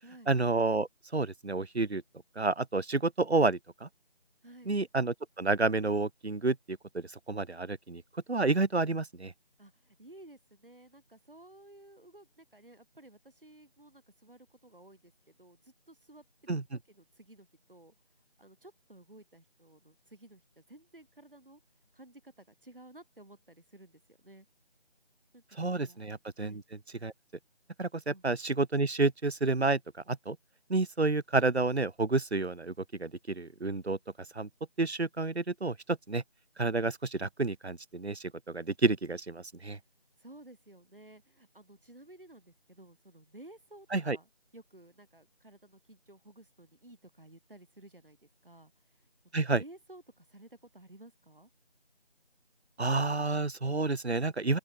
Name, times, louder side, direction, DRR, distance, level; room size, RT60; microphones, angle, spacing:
voice 1, 0.3-2.0 2.4-3.9 4.7-8.0 8.3-9.3 16.5-16.6 25.6-26.5 27.0-27.1 27.8-29.8 30.1-30.4 30.7-32.7 33.0-34.0 34.3-34.5 34.8-36.2 36.6-39.8 43.9-44.2 49.3-49.6 52.8-54.6, right 3 dB, 75° right, 1.2 m, -30 dB
voice 2, 4.4-4.7 9.6-17.9 18.4-21.6 21.9-24.5 25.3-26.0 26.4-26.6 28.1-28.2 40.2-51.5, right 1 dB, 55° right, 7.4 m, -54 dB
open air
figure-of-eight pair, 175°, 33 cm